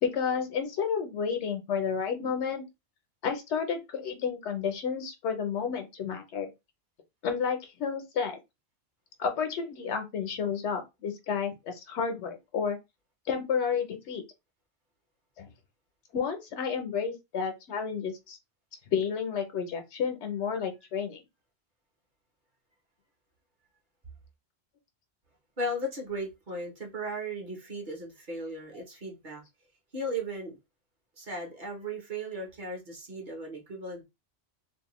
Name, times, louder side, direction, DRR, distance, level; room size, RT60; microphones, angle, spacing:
voice 1, 0.0-2.6 3.2-6.5 7.2-8.4 9.2-12.8 13.3-14.2 15.4-15.5 16.1-18.4 18.9-21.2, left 6 dB, 80° left, 1.0 m, -31 dB
voice 2, 25.6-29.4 29.9-30.6 31.2-34.0, right 1 dB, 50° right, 0.9 m, -36 dB
2.6 x 2.1 x 2.9 m
omnidirectional pair, 1.2 m